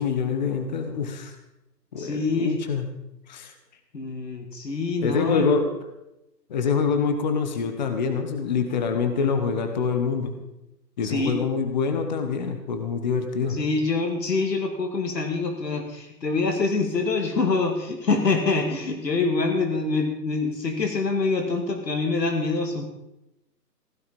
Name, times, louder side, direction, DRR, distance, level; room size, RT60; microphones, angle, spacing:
voice 1, 0.0-1.3 1.9-2.8 3.3-3.5 5.0-5.7 6.5-10.3 11.0-13.6, left 5 dB, 25° left, 7 dB, 1.2 m, -25 dB
voice 2, 2.0-2.6 3.9-5.5 11.0-11.4 13.5-22.8, left 3 dB, 75° left, 4 dB, 2.8 m, -25 dB
16.0 x 11.5 x 5.3 m, 0.91 s
hypercardioid pair, 160°, 50 cm